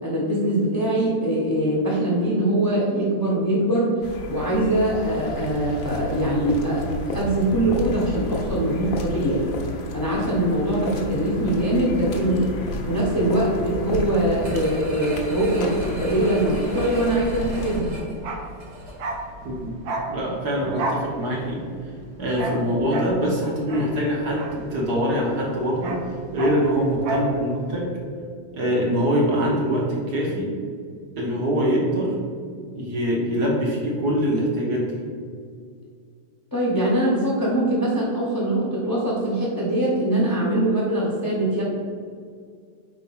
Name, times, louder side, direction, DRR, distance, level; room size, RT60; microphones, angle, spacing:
voice 1, 0.0-9.5 9.9-12.5 12.9-17.9 36.5-41.6, right 1 dB, 15° left, -5 dB, 0.8 m, -22 dB
sound 1, 4.0-17.8, left 2 dB, 55° left, 1.0 m, -32 dB
sound 2, 14.4-19.2 19.6-19.7, right 1 dB, 45° right, 1.2 m, -38 dB
Bark, 18.1-25.2 25.4-27.4 27.6-27.8, right 2 dB, 85° right, 1.5 m, -32 dB
voice 2, 19.4-19.7 20.1-21.6 22.2-27.9 28.5-30.5 31.2-32.2 32.7-34.9, equal, 60° right, -3 dB, 1.6 m, -24 dB
4.5 x 3.7 x 5.5 m, 2.1 s
omnidirectional pair, 2.0 m